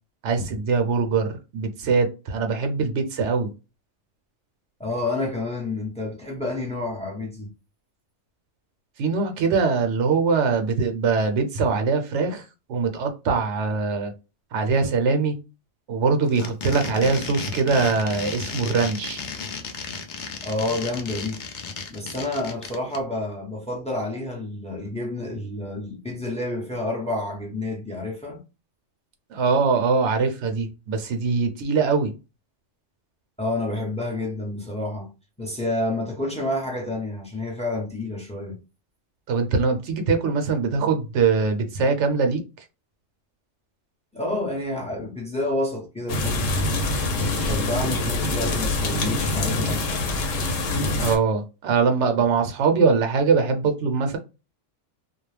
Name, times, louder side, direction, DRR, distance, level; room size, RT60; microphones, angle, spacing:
voice 1, 0.2-3.5 9.0-14.1 14.5-15.4 15.9-19.2 29.3-32.1 39.3-42.4 51.0-54.2, right 4 dB, 75° right, 0.9 m, -22 dB
voice 2, 4.8-7.5 20.4-21.4 21.9-28.4 33.4-35.1 35.4-38.6 44.1-46.5 47.3-50.2, left 2 dB, 10° left, 0.5 m, -29 dB
sound 1, 16.2-23.0, left 5 dB, 65° left, 0.5 m, -34 dB
sound 2, 46.1-51.2, left 2 dB, 85° left, 1.0 m, -25 dB
2.3 x 2.1 x 3.1 m
omnidirectional pair, 1.3 m